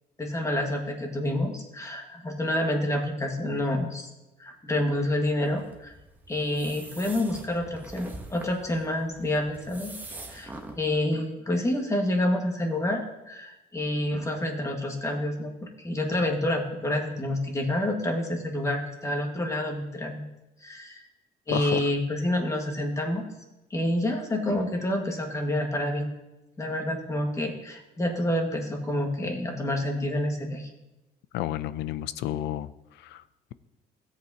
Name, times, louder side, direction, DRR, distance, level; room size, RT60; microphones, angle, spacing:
voice 1, 0.2-4.1 4.4-5.9 6.3-9.9 10.3-20.3 20.6-21.0 21.5-23.2 23.7-26.1 26.6-30.7, left 1 dB, 20° left, 2 dB, 1.7 m, -28 dB
sound 1, 5.4-10.8, right 2 dB, 10° right, 1.0 m, -44 dB
voice 2, 21.5-21.9 31.3-32.7 33.0-33.2, left 13 dB, 90° left, 16 dB, 0.5 m, -31 dB
16.5 x 8.2 x 2.9 m, 0.98 s
cardioid pair, 135°, 17 cm